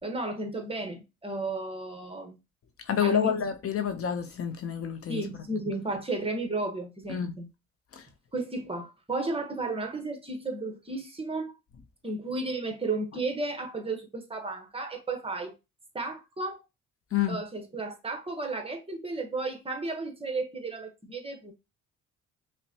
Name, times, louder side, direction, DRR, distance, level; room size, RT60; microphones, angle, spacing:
voice 1, 0.0-2.4 3.0-3.3 5.1-7.5 8.3-11.5 12.0-15.5 15.9-16.6 17.3-21.5, right 2 dB, 20° right, 1.0 m, -33 dB
voice 2, 2.9-5.2 7.1-7.3 7.9-8.0 17.1-17.4, left 8 dB, 50° left, 0.6 m, -28 dB
5.4 x 2.2 x 2.8 m
cardioid pair, 90°, 30 cm